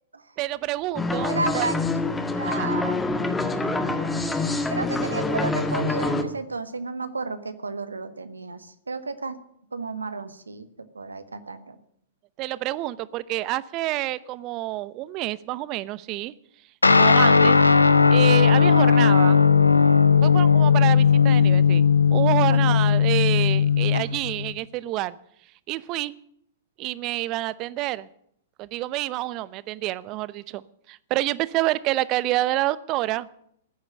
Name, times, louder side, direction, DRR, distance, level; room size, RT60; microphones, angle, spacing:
voice 1, 0.4-1.7 2.4-2.7 12.4-16.3 16.9-17.6 18.1-19.4 20.2-21.8 22.1-25.1 25.7-26.1 26.8-28.1 28.6-30.6 30.9-33.3, right 16 dB, 40° right, 18 dB, 0.8 m, -28 dB
sound 1, 0.9-6.2, left 2 dB, 10° left, 1.8 m, -26 dB
voice 2, 1.3-1.8 2.3-3.0 4.7-9.4 9.7-11.8 22.5-22.8, right 3 dB, 85° right, 11 dB, 1.5 m, -32 dB
Guitar, 16.8-24.5, left 6 dB, 90° left, 1.0 m, -17 dB
14.5 x 9.9 x 8.8 m, 0.70 s
figure-of-eight pair, 105°, 0 cm